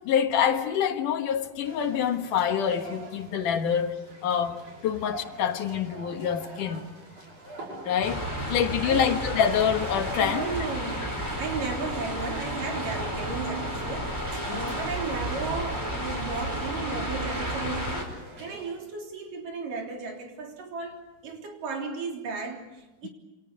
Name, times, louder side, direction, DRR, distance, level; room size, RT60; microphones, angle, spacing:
voice 1, 0.0-7.0 7.8-10.5 14.5-14.7 23.0-23.1, left 8 dB, 75° left, 2.9 m, -26 dB
sound 1, 1.6-18.7, right 2 dB, 65° right, 7.1 m, -46 dB
sound 2, 8.0-18.0, right 1 dB, 5° right, 4.6 m, -32 dB
voice 2, 10.2-23.1, right 4 dB, 80° right, 5.2 m, -35 dB
28.0 x 26.0 x 6.8 m
omnidirectional pair, 3.8 m